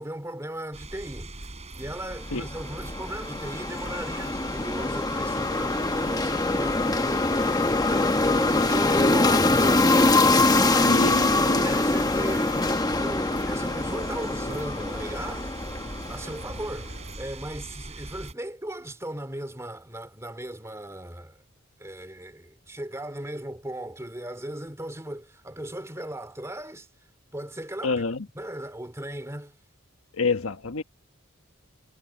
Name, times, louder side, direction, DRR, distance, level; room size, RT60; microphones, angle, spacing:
voice 1, 0.0-1.4 1.7-9.8 10.3-15.5 16.1-21.4 21.8-26.9 27.3-28.0 28.3-29.6, right 1 dB, 15° right, 2.5 m, -37 dB
sound 1, 0.7-18.3, right 2 dB, 30° right, 4.2 m, -41 dB
sound 2, 2.3-16.7, left 2 dB, 20° left, 1.0 m, -24 dB
sound 3, 10.5-17.2, right 2 dB, 90° right, 6.9 m, -48 dB
voice 2, 10.9-11.6 27.8-28.3 30.1-30.8, left 4 dB, 85° left, 1.4 m, -28 dB
head